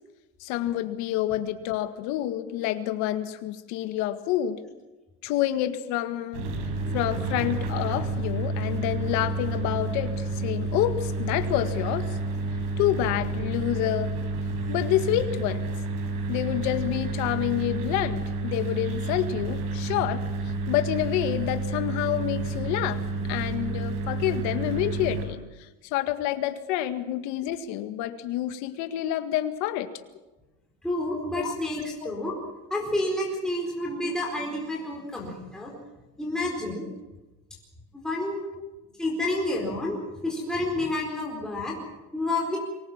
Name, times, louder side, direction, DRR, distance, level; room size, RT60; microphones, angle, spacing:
voice 1, 0.4-4.7 5.2-6.5 6.9-12.2 12.8-14.2 14.7-15.7 16.3-20.2 20.7-23.0 23.3-29.9 31.4-31.6 32.0-32.1 38.6-38.7, left 13 dB, 70° left, 9 dB, 1.9 m, -28 dB
sound 1, 6.3-25.3, right 3 dB, 90° right, 6.5 m, -30 dB
voice 2, 30.8-32.3 32.7-35.7 36.2-36.9 38.0-38.4 39.0-41.7 42.1-42.6, left 1 dB, ahead, -3 dB, 4.4 m, -29 dB
24.0 x 20.0 x 7.4 m, 1.1 s
cardioid pair, 175°, 30 cm